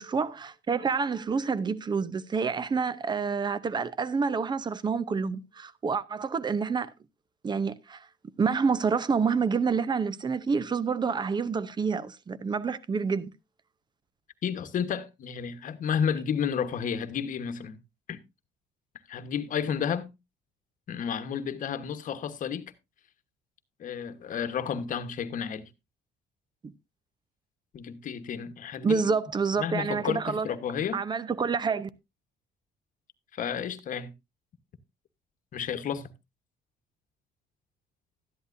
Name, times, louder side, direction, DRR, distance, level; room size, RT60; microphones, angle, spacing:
voice 1, 0.0-6.9 7.4-8.1 8.4-13.3 28.8-30.5 30.9-31.9, right 5 dB, 25° right, 0.7 m, -28 dB
voice 2, 14.4-17.8 18.1-18.2 19.1-20.1 20.9-22.7 23.8-25.7 27.7-29.1 29.6-31.0 33.3-34.1 35.5-36.1, left 7 dB, 50° left, 1.2 m, -31 dB
13.0 x 10.5 x 2.6 m
cardioid pair, 110°, 17 cm